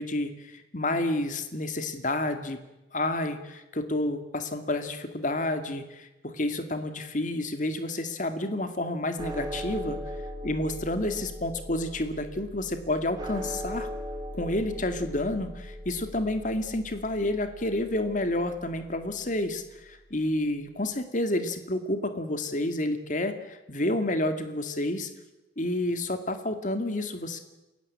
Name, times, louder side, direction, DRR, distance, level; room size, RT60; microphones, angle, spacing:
voice 1, 0.0-2.6 2.9-10.0 10.4-13.9 14.3-25.1 25.6-27.4, left 1 dB, 45° left, 8 dB, 2.3 m, -30 dB
sound 1, 9.2-19.6, equal, 20° right, 3.3 m, -39 dB
28.5 x 16.0 x 8.6 m, 0.99 s
head